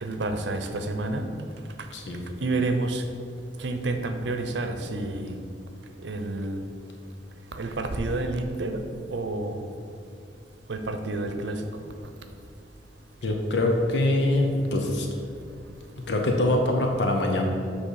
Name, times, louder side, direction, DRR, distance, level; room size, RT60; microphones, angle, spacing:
voice 1, 0.0-1.3 2.4-3.0 3.6-5.4 6.0-6.6 7.5-8.8 9.1-9.7 10.7-11.6, right 2 dB, 80° right, 6 dB, 0.7 m, -29 dB
voice 2, 1.9-2.2 13.2-15.1 16.1-17.5, left 1 dB, 80° left, 2 dB, 0.8 m, -24 dB
8.2 x 3.3 x 6.4 m, 2.4 s
head